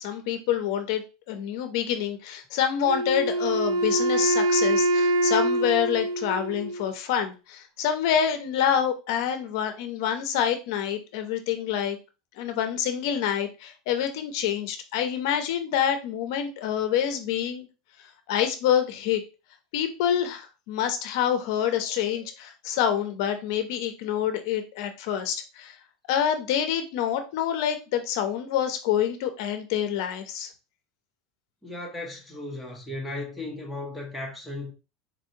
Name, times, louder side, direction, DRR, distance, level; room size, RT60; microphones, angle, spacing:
voice 1, 0.0-12.0 12.4-17.7 18.3-19.2 19.7-25.8 26.1-30.5, left 9 dB, 55° left, 0.6 m, -27 dB
Wind instrument woodwind instrument, 2.9-6.9, right 1 dB, 90° right, 0.9 m, -24 dB
voice 2, 31.6-34.7, left 2 dB, ahead, 0.6 m, -36 dB
4.1 x 2.7 x 2.7 m
supercardioid pair, 175°, 3 cm